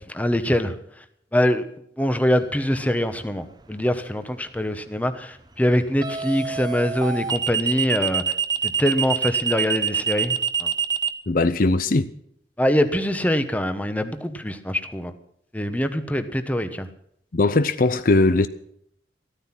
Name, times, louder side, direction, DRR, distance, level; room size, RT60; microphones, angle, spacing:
voice 1, 0.1-1.0 1.3-1.6 2.0-8.2 8.8-10.7 12.6-15.1 15.5-16.9, equal, 10° left, 1.1 m, -24 dB
sound 1, 2.7-3.0 6.0-11.1, right 7 dB, 25° right, 1.0 m, -25 dB
voice 2, 11.3-12.1 17.3-18.5, left 2 dB, 50° left, 0.6 m, -19 dB
14.0 x 13.5 x 6.0 m
head